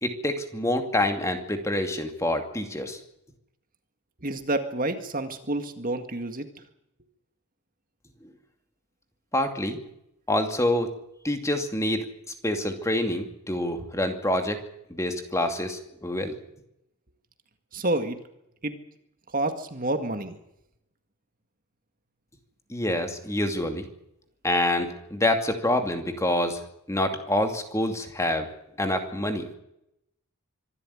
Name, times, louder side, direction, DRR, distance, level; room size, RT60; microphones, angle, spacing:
voice 1, 0.0-3.0 9.3-9.8 10.3-10.9 11.2-12.1 12.4-14.6 14.9-16.3 22.7-23.8 24.4-26.6 26.9-28.5 28.8-29.5, left 1 dB, 15° left, 5 dB, 2.5 m, -26 dB
voice 2, 4.2-6.5 17.7-18.2 18.6-18.8 19.3-20.4, right 2 dB, 40° right, 7 dB, 1.9 m, -29 dB
25.0 x 12.5 x 9.9 m, 0.81 s
head